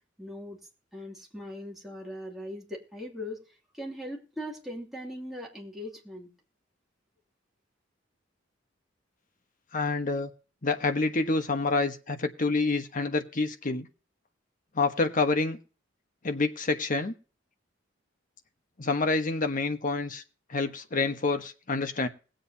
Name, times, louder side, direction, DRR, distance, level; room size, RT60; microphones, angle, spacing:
voice 1, 0.2-0.6 0.9-3.4 3.7-6.3, left 1 dB, ahead, -1 dB, 2.6 m, -39 dB
voice 2, 9.7-10.3 10.6-13.9 14.7-15.6 16.2-17.1 18.8-20.2 20.5-22.1, left 3 dB, 45° left, 7 dB, 1.2 m, -27 dB
20.5 x 7.8 x 2.8 m, 0.36 s
head